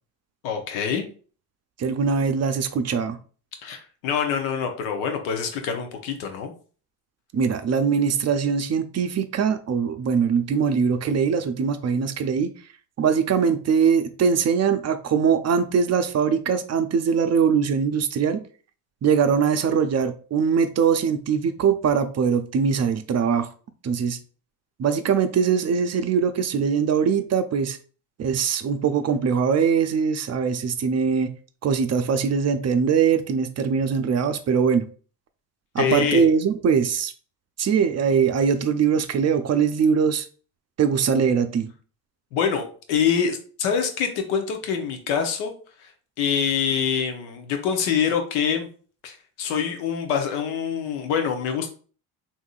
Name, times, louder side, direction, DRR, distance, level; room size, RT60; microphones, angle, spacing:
voice 1, 0.4-1.0 3.6-6.5 35.8-36.3 42.3-45.5 45.8-45.9 46.2-48.7 49.0-51.7, left 7 dB, 85° left, 5 dB, 0.8 m, -25 dB
voice 2, 1.8-3.2 7.3-12.5 13.0-18.4 19.0-23.5 23.8-24.2 24.8-27.8 28.2-31.3 31.6-34.9 35.7-37.1 37.6-40.3 40.8-41.7, right 6 dB, 35° right, 9 dB, 0.5 m, -22 dB
3.6 x 2.7 x 2.3 m, 0.40 s
supercardioid pair, 65°, 47 cm